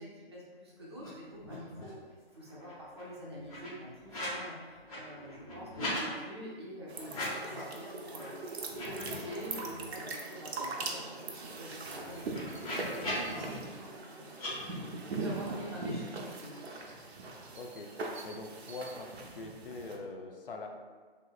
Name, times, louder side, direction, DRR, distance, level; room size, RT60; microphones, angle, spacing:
voice 1, 0.0-16.6, equal, 25° right, -6 dB, 0.5 m, -46 dB
sound 1, 0.9-1.1 1.3-2.0 2.4-4.4 4.7-6.1 7.0-7.7 8.1-8.3 8.6-10.0 10.4-10.5 10.7-13.4 14.3-14.5, left 1 dB, 35° left, 1.2 m, -41 dB
sound 2, 6.9-20.0, right 3 dB, 85° right, 0.6 m, -41 dB
voice 2, 17.6-17.9 18.2-19.1 19.3-20.7, left 3 dB, 60° left, 3 dB, 0.5 m, -43 dB
3.2 x 2.8 x 2.3 m, 1.5 s
hypercardioid pair, 160°, 31 cm